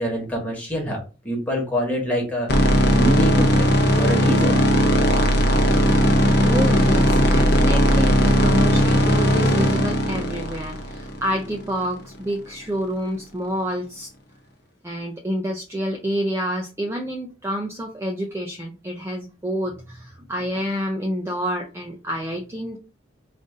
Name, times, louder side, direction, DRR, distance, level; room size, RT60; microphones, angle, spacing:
voice 1, 0.0-2.5 2.9-4.6, equal, 10° left, -1 dB, 1.3 m, -25 dB
sound 1, 2.5-11.7, equal, 55° left, 0.8 m, -18 dB
voice 2, 6.5-14.1 14.8-22.8, equal, 15° right, 1 dB, 0.4 m, -28 dB
3.9 x 2.5 x 3.6 m, 0.32 s
head